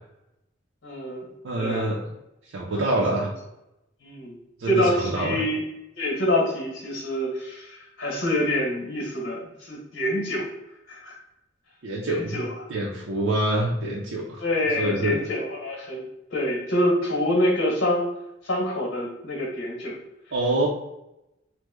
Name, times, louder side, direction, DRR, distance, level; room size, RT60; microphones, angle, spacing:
voice 1, 0.8-1.3 1.6-1.9 2.9-3.0 4.0-4.4 4.6-5.6 6.0-10.5 10.9-11.1 12.1-12.5 14.4-16.0 16.3-18.1 18.4-19.9, left 1 dB, 70° left, -2 dB, 1.0 m, -26 dB
voice 2, 1.4-2.1 2.5-3.3 4.6-5.4 11.8-12.4 12.7-14.4 14.8-15.2 20.3-20.7, right 2 dB, 75° right, -3 dB, 0.5 m, -26 dB
3.0 x 2.0 x 3.4 m, 0.90 s
head